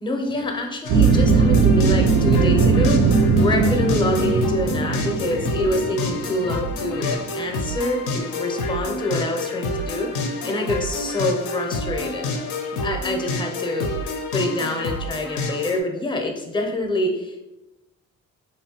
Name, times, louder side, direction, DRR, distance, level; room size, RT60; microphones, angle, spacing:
voice 1, 0.0-3.0 3.4-12.3 12.8-13.9 14.3-17.4, left 1 dB, 15° left, 3 dB, 0.5 m, -26 dB
sound 1, 0.8-15.8, left 2 dB, 80° left, 0.5 m, -28 dB
sound 2, 0.9-7.1, right 4 dB, 65° right, 0.4 m, -19 dB
3.2 x 2.2 x 2.8 m, 0.97 s
cardioid pair, 90°, 30 cm